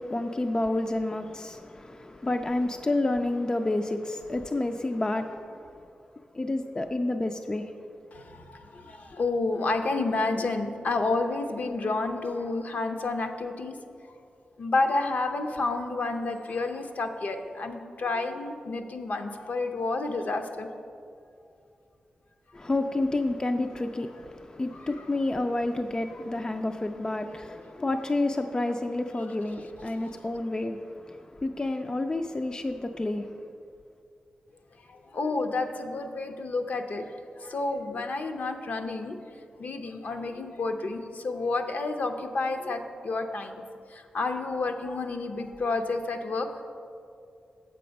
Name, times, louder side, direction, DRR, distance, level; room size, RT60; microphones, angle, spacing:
voice 1, 0.0-5.9 6.3-7.8 22.5-33.5, left 2 dB, 25° left, 0.4 m, -30 dB
voice 2, 8.1-13.8 14.6-20.7 24.7-25.2 27.8-28.0 29.2-29.5 29.9-30.1 34.9-39.2 39.6-43.6 43.9-46.5, left 3 dB, 60° left, 0.7 m, -30 dB
7.7 x 6.8 x 5.2 m
cardioid pair, 65°, 3 cm